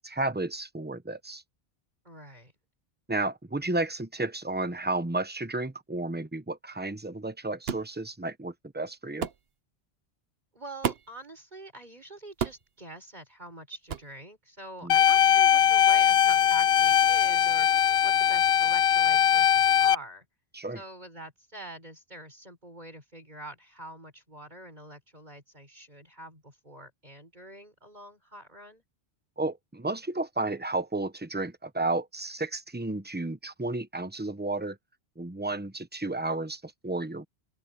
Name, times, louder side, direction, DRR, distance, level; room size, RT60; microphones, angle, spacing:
voice 1, 0.0-1.4 3.1-9.3 14.8-15.0 20.5-20.8 29.4-34.8 35.2-37.3, right 2 dB, 10° right, 1.0 m, -32 dB
voice 2, 2.1-2.5 10.5-20.3 20.7-28.8, right 1 dB, 45° right, 5.3 m, -45 dB
sound 1, 7.7-7.9 9.2-9.4 10.8-11.2 12.4-12.7 13.9-14.1, right 7 dB, 70° right, 1.1 m, -31 dB
sound 2, 14.9-19.9, left 9 dB, 70° left, 0.8 m, -21 dB
open air
omnidirectional pair, 1.1 m